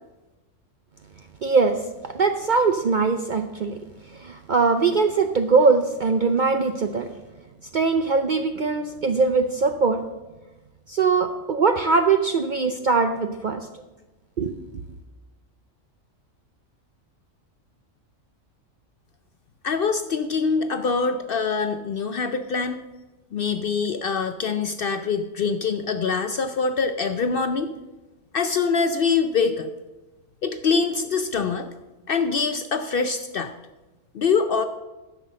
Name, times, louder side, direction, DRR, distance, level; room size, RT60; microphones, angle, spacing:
voice 1, 1.4-3.8 4.1-7.1 7.7-10.0 10.9-13.7 14.4-14.5, right 4 dB, 55° right, 7 dB, 0.5 m, -21 dB
voice 2, 19.6-22.8 23.3-27.7 28.3-29.7 30.4-31.7 32.1-33.5 34.1-34.6, left 5 dB, 60° left, 8 dB, 0.6 m, -24 dB
10.5 x 6.1 x 6.3 m, 1.1 s
omnidirectional pair, 1.4 m